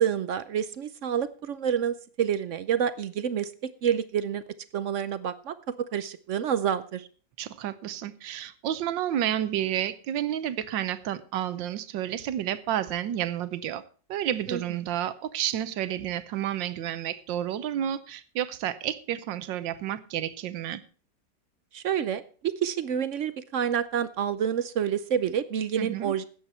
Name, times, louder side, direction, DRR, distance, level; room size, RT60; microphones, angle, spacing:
voice 1, 0.0-4.4 4.7-7.1 14.5-14.6 21.7-26.2, right 8 dB, 65° right, 0.7 m, -28 dB
voice 2, 7.4-13.8 14.1-20.8 25.8-26.1, right 11 dB, 85° right, 1.5 m, -30 dB
14.0 x 9.5 x 4.3 m
omnidirectional pair, 2.0 m